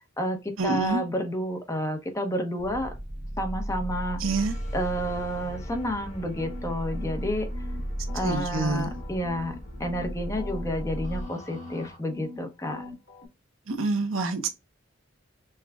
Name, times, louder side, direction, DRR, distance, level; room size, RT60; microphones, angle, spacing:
voice 1, 0.0-2.9 3.4-4.2 4.7-7.6 8.1-12.8, equal, 15° left, 0.8 m, -30 dB
voice 2, 0.6-1.0 4.2-4.6 8.2-8.9 13.7-14.5, right 3 dB, 85° right, 0.8 m, -27 dB
sound 1, 2.6-11.2, equal, 15° right, 0.6 m, -35 dB
sound 2, 4.2-12.0, left 1 dB, 40° left, 1.6 m, -48 dB
sound 3, 6.4-7.8 8.1-10.1 10.4-12.4 12.6-13.3, left 2 dB, 55° left, 1.6 m, -43 dB
5.6 x 2.3 x 2.3 m
head